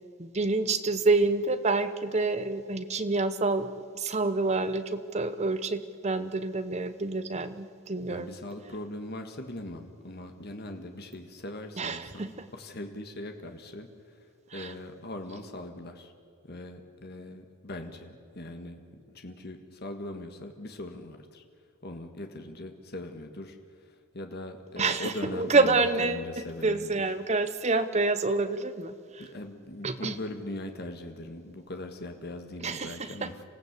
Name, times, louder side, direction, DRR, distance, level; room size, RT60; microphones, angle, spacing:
voice 1, 0.2-8.3 11.8-12.5 14.5-14.7 24.8-26.2 26.6-29.3 29.8-30.2 32.6-33.3, right 3 dB, 30° right, 11 dB, 0.9 m, -28 dB
voice 2, 8.1-13.9 14.5-16.1 16.4-21.4 21.8-27.0 29.2-33.4, left 1 dB, 45° left, 5 dB, 1.6 m, -40 dB
27.0 x 16.0 x 8.2 m, 2.2 s
head